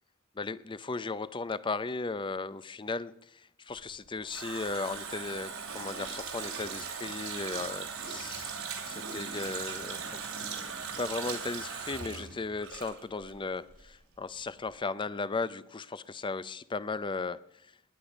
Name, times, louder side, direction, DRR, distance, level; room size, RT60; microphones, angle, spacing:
voice 1, 0.4-8.5 8.9-10.2 11.0-17.7, left 3 dB, 25° left, 16 dB, 0.5 m, -36 dB
Water tap faucet, 3.8-13.4 13.7-13.8, right 6 dB, 90° right, 2.8 m, -39 dB
20.0 x 9.0 x 5.1 m, 0.72 s
head